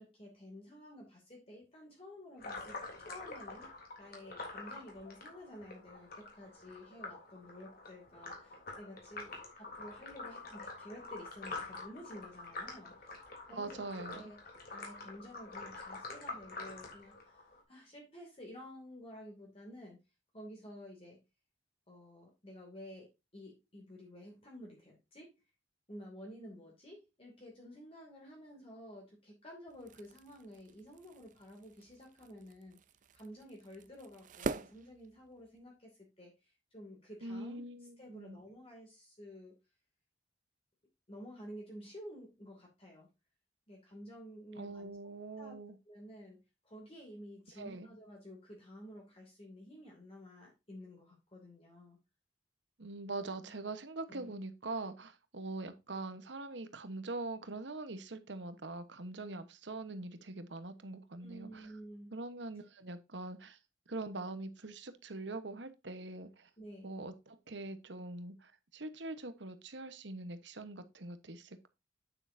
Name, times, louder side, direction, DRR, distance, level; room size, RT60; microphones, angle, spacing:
voice 1, 0.0-3.7 4.0-20.0 20.3-21.2 21.9-25.3 25.9-32.8 33.1-39.5 41.1-43.1 43.7-45.6 45.9-46.4 46.6-52.0 53.2-53.5 54.1-54.3 61.2-62.2 66.6-66.9, equal, 30° left, 2.5 m, -52 dB
sound 1, 2.4-17.6, left 3 dB, 50° left, 3.4 m, -47 dB
voice 2, 13.5-14.3 37.2-38.4 44.6-45.8 47.6-47.9 52.8-61.7 62.1-63.6 63.9-66.5 66.8-71.7, right 2 dB, 70° right, 1.2 m, -43 dB
sound 2, 29.7-35.7, right 3 dB, 45° right, 0.5 m, -45 dB
9.0 x 7.7 x 2.7 m
head